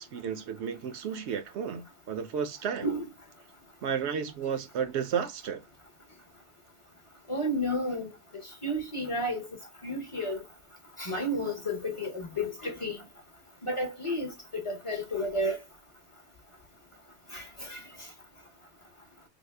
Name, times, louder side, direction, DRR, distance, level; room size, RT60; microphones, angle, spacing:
voice 1, 0.0-2.9 3.8-5.6, right 7 dB, 75° right, 0.8 m, -33 dB
voice 2, 7.3-8.1 8.6-9.5 9.8-10.4 11.0-13.0 13.6-15.6 17.3-17.8, equal, 30° left, 0.8 m, -31 dB
3.5 x 2.0 x 3.3 m
omnidirectional pair, 1.2 m